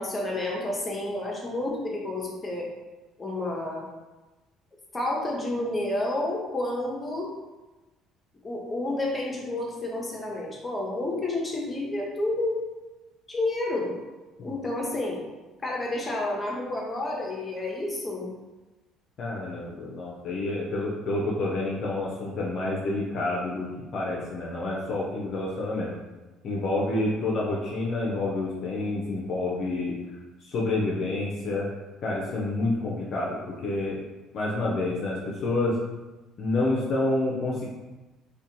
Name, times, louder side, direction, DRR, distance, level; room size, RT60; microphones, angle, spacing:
voice 1, 0.0-2.7 3.2-3.8 4.9-7.3 8.4-12.6 13.3-13.9 14.4-15.2 15.6-18.3, left 2 dB, 25° left, -2 dB, 0.7 m, -30 dB
voice 2, 19.2-25.9 26.4-30.0 30.4-31.7 32.0-34.0 34.3-35.8 36.4-37.6, left 2 dB, 55° left, -4 dB, 0.5 m, -28 dB
2.5 x 2.2 x 2.6 m, 1.1 s
hypercardioid pair, 60°, 0 cm